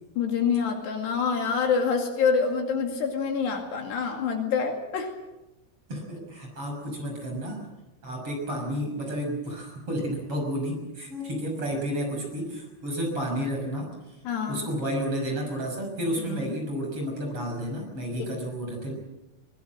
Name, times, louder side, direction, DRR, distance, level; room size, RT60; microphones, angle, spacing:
voice 1, 0.2-5.2 14.2-14.7 16.3-16.6 18.2-18.3, left 6 dB, 65° left, 3 dB, 4.2 m, -26 dB
voice 2, 5.9-7.6 8.0-13.9 14.5-18.9, equal, 30° right, 1 dB, 6.7 m, -31 dB
22.5 x 20.5 x 7.7 m, 0.97 s
omnidirectional pair, 5.5 m